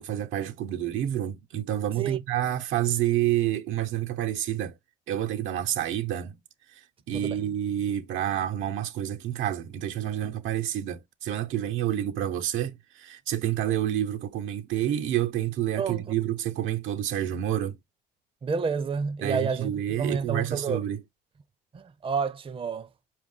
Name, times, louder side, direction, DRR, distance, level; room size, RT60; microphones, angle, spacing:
voice 1, 0.0-4.8 5.1-6.4 6.7-17.8 19.2-21.0, right 12 dB, 90° right, 0.7 m, -29 dB
voice 2, 18.4-19.7 20.0-20.8 21.7-22.9, right 5 dB, 30° right, 0.5 m, -29 dB
4.6 x 2.4 x 3.7 m
cardioid pair, 90°, 20 cm